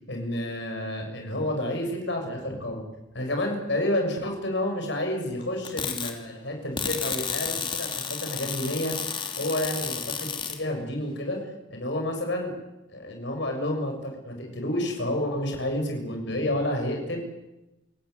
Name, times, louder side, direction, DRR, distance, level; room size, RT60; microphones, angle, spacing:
voice 1, 0.1-2.8 3.1-8.9 9.4-11.4 11.7-12.5 12.9-17.2, left 1 dB, 65° left, 3 dB, 6.8 m, -30 dB
sound 1, 5.6-6.1 6.8-10.6, left 6 dB, 25° left, 3.0 m, -31 dB
28.5 x 17.5 x 9.6 m, 0.98 s
head